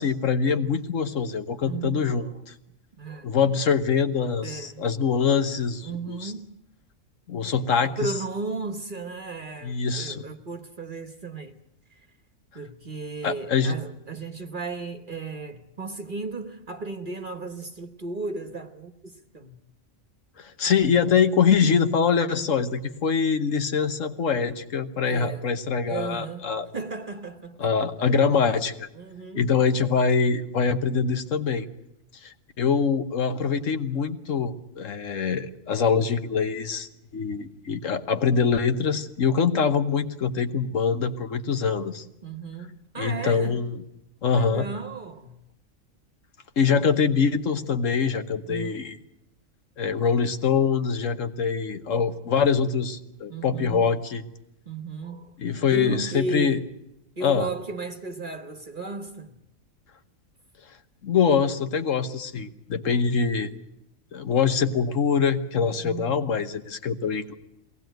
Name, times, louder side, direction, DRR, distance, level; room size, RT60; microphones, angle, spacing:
voice 1, 0.0-2.3 3.2-6.3 7.3-8.1 9.6-10.2 13.2-13.7 20.4-26.7 27.6-28.9 29.3-31.7 32.2-42.0 43.0-43.8 44.2-44.7 46.6-49.0 49.8-54.2 55.4-56.6 57.2-57.5 61.0-63.5 64.1-67.3, left 6 dB, 70° left, 1.5 m, -24 dB
voice 2, 1.6-2.3 3.0-3.3 4.4-4.8 5.8-6.6 7.8-11.6 11.9-12.0 12.5-19.6 25.1-25.5 25.9-27.6 28.9-29.7 42.2-43.6 44.3-45.4 48.5-48.8 53.3-53.9 54.7-55.4 55.7-56.7 57.2-59.4 65.8-66.4, right 3 dB, 40° right, 1.2 m, -35 dB
22.0 x 18.0 x 9.1 m
omnidirectional pair, 1.4 m